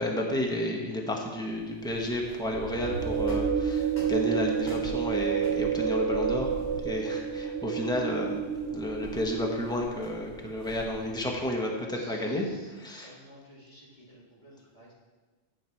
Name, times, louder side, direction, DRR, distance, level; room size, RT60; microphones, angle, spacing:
voice 1, 0.0-6.5 6.8-12.5 12.7-13.1, left 1 dB, 5° left, 0 dB, 1.1 m, -31 dB
sound 1, 1.4-11.4, equal, 65° left, 3.1 m, -46 dB
sound 2, 2.7-10.0, right 7 dB, 65° right, 0.9 m, -30 dB
voice 2, 11.9-14.9, equal, 45° left, -7 dB, 3.4 m, -54 dB
8.8 x 8.2 x 4.5 m, 1.3 s
omnidirectional pair, 1.1 m